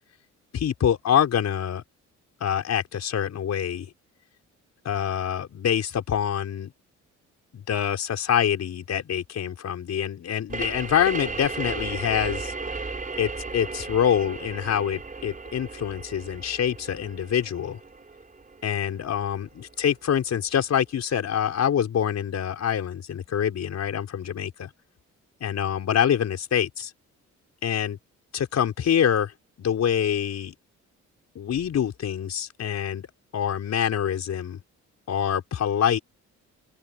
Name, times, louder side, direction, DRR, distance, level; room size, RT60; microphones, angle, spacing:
voice 1, 0.5-1.8 2.4-3.9 4.9-6.7 7.5-12.5 13.2-17.8 18.6-24.7 25.4-26.9 27.6-28.0 28.3-29.3 29.6-30.5 31.4-33.1 33.3-34.6 35.1-36.0, left 9 dB, 60° left, 5.3 m, -25 dB
sound 1, 10.5-19.9, right 3 dB, 25° right, 4.6 m, -35 dB
open air
cardioid pair, 90°, 30 cm